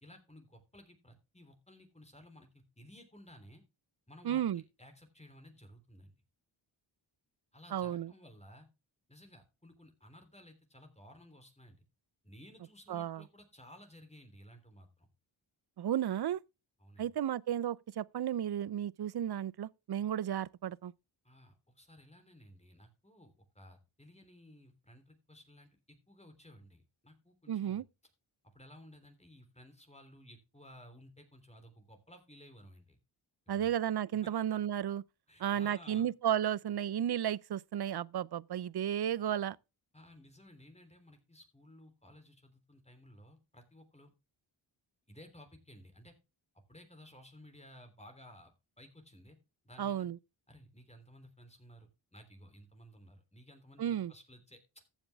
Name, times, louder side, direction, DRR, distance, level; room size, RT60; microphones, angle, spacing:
voice 1, 0.0-3.6 4.1-6.2 7.5-8.7 9.1-11.8 12.2-15.1 16.8-17.1 21.2-27.8 28.5-33.0 33.5-33.7 34.2-34.3 35.3-36.1 39.9-44.1 45.1-46.1 46.7-49.4 49.6-50.1 50.5-54.8, equal, 15° left, 3.4 m, -56 dB
voice 2, 4.2-4.6 7.7-8.1 12.9-13.2 15.8-16.4 17.0-20.9 27.5-27.8 33.5-35.0 35.4-39.6 49.8-50.2 53.8-54.1, right 10 dB, 50° right, 0.6 m, -33 dB
14.5 x 7.3 x 3.5 m
cardioid pair, 60°, 49 cm